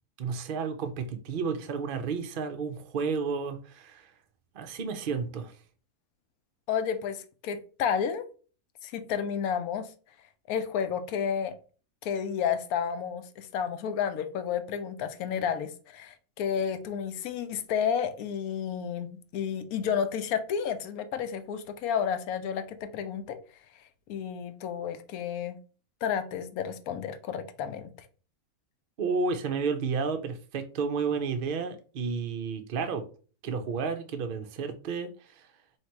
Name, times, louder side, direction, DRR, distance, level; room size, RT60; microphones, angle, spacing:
voice 1, 0.2-4.1 4.5-5.5 29.0-33.0 33.4-35.1 35.4-35.5, right 5 dB, 70° right, 0.5 m, -31 dB
voice 2, 6.7-8.2 8.8-9.9 10.5-11.5 12.0-23.4 24.1-25.6 26.0-27.9, left 7 dB, 85° left, 1.1 m, -31 dB
3.2 x 2.8 x 4.4 m
omnidirectional pair, 1.5 m